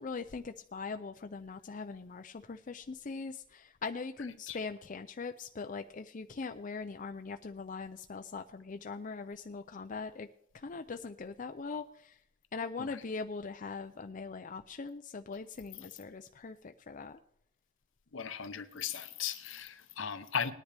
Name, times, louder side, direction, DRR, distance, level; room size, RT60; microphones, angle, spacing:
voice 1, 0.0-10.3 10.5-12.2 12.5-17.2, left 4 dB, 40° left, 7 dB, 0.5 m, -41 dB
voice 2, 18.1-20.5, left 7 dB, 65° left, 11 dB, 0.9 m, -37 dB
19.5 x 10.0 x 3.4 m, 0.73 s
head